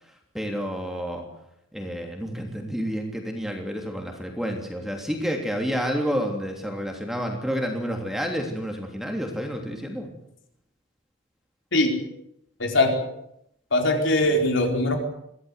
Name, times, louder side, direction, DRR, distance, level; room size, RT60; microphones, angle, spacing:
voice 1, 0.3-1.3 1.7-10.1, equal, ahead, 2 dB, 3.2 m, -29 dB
voice 2, 12.6-12.9 13.7-15.0, left 1 dB, 60° left, 3 dB, 4.6 m, -21 dB
24.0 x 17.0 x 8.2 m, 0.77 s
head